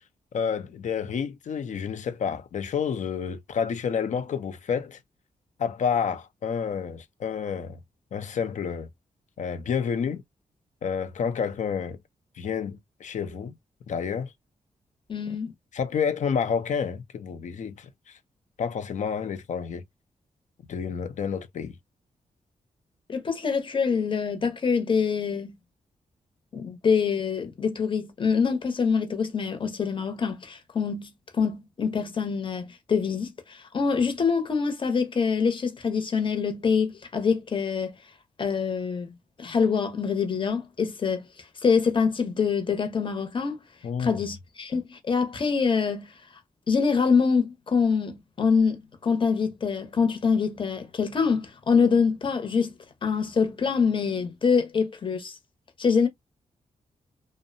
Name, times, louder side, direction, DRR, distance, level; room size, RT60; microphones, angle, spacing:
voice 1, 0.3-5.0 5.6-7.8 8.1-8.9 9.4-10.2 10.8-12.0 12.4-13.5 13.9-14.3 15.7-18.2 18.6-19.8 20.7-21.8 43.8-44.3, left 7 dB, 65° left, 0.6 m, -29 dB
voice 2, 15.1-15.5 23.1-25.5 26.5-37.9 38.4-39.1 39.4-41.2 41.6-43.6 44.0-46.1 46.7-52.7 53.0-55.3 55.8-56.1, left 5 dB, 40° left, 0.8 m, -25 dB
2.6 x 2.1 x 2.5 m
wide cardioid pair, 125°, 13 cm